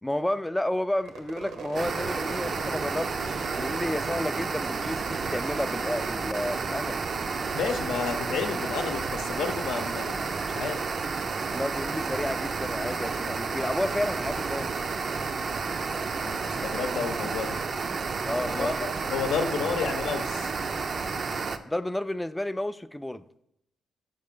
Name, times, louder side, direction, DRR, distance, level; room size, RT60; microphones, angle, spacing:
voice 1, 0.0-7.0 11.5-14.7 18.3-18.8 21.6-23.2, left 1 dB, 10° left, 0.3 m, -31 dB
Crowd / Fireworks, 1.0-6.4 6.7-7.3 7.6-11.2, right 4 dB, 80° right, 0.8 m, -43 dB
sound 1, 1.7-21.6, right 4 dB, 50° right, 0.4 m, -31 dB
voice 2, 7.5-10.2 10.5-10.8 16.1-17.5 18.4-18.7 19.0-20.5, left 5 dB, 80° left, 0.7 m, -31 dB
5.4 x 4.7 x 5.2 m
supercardioid pair, 50°, 0 cm